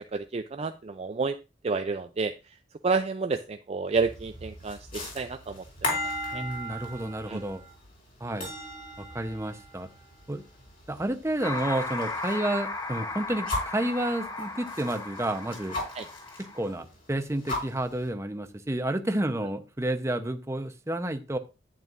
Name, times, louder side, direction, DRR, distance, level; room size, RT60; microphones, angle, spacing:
voice 1, 0.1-1.3 1.6-2.3 2.8-6.0 6.3-6.4 7.3-7.4 8.2-8.4 16.0-16.1, right 4 dB, 35° right, 7 dB, 0.4 m, -30 dB
sound 1, 4.0-12.4 12.7-13.8 14.4-16.4 16.8-16.9 17.1-18.0, left 2 dB, 50° left, 4.4 m, -37 dB
voice 2, 6.3-7.6 8.2-8.5 9.0-9.9 10.3-10.4 10.9-15.8 16.5-21.4, right 1 dB, 15° right, 8 dB, 0.8 m, -30 dB
sound 2, 11.4-16.7, left 3 dB, 20° left, 0.8 m, -36 dB
11.0 x 9.0 x 2.5 m, 0.28 s
head